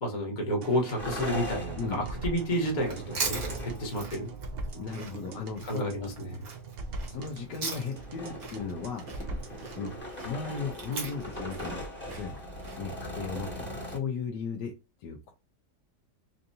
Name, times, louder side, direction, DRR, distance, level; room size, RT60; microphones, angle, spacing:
voice 1, 0.0-4.3 5.6-6.4, equal, 30° left, -1 dB, 1.3 m, -31 dB
sound 1, 0.6-10.0, right 3 dB, 80° right, 0.5 m, -41 dB
sound 2, 1.0-4.5 5.5-5.6 6.0-6.2 6.6-14.0, equal, 5° left, 1.1 m, -40 dB
Chewing mastication, 2.8-8.1 8.4-12.8, right 4 dB, 60° right, 1.6 m, -39 dB
voice 2, 4.7-5.8 7.1-9.0 9.7-9.9 10.2-12.4 12.8-14.7 15.0-15.3, left 5 dB, 75° left, 3 dB, 1.2 m, -36 dB
4.4 x 2.6 x 2.7 m, 0.28 s
omnidirectional pair, 1.8 m